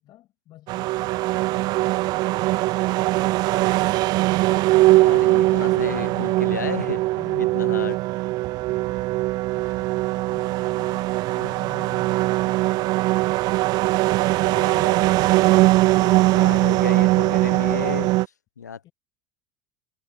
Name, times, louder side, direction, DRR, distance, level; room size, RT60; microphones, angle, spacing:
voice 1, 0.0-2.1 7.2-7.8 8.6-12.9 18.8-18.9, left 15 dB, 50° left, 6.7 m, -48 dB
sound 1, 0.7-18.3, right 19 dB, 50° right, 0.4 m, -21 dB
voice 2, 4.7-7.0 7.4-8.0 11.3-11.5 14.0-14.1 14.4-18.1 18.6-18.9, left 7 dB, 85° left, 1.0 m, -33 dB
figure-of-eight pair, 70°, 9 cm